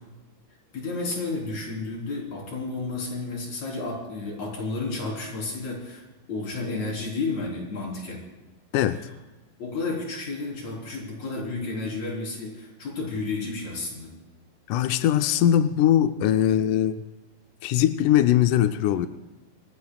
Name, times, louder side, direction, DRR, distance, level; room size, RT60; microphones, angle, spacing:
voice 1, 0.7-8.2 9.6-14.1, left 3 dB, 50° left, -2 dB, 4.9 m, -32 dB
voice 2, 14.7-17.0 17.6-19.1, left 11 dB, 80° left, 9 dB, 1.8 m, -21 dB
26.5 x 18.0 x 2.3 m, 1.2 s
omnidirectional pair, 4.2 m